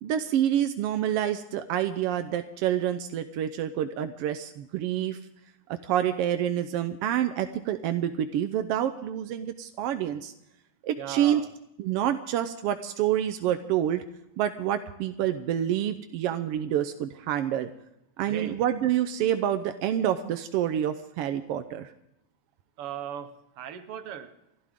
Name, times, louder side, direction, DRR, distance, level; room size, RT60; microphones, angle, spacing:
voice 1, 0.0-5.2 5.7-10.3 10.8-11.4 11.8-14.0 14.4-17.7 18.2-21.9, right 10 dB, 75° right, 8 dB, 1.4 m, -27 dB
voice 2, 11.0-11.5 18.3-18.5 22.8-23.3 23.6-24.3, right 9 dB, 60° right, 9 dB, 1.7 m, -37 dB
29.5 x 12.5 x 3.7 m, 0.85 s
omnidirectional pair, 3.4 m